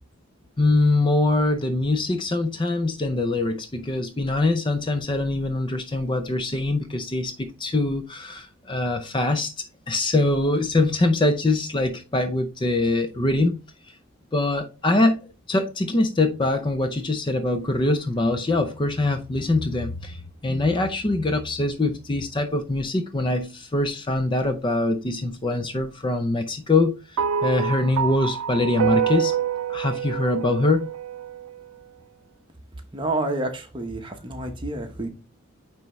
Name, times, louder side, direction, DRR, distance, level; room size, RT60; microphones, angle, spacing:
voice 1, 0.6-13.6 14.3-29.3 29.7-30.9, left 2 dB, 20° left, 0.5 m, -23 dB
sound 1, 27.2-31.6, right 8 dB, 90° right, 0.4 m, -26 dB
voice 2, 32.9-35.1, right 2 dB, 25° right, 1.0 m, -29 dB
9.2 x 3.4 x 3.1 m
head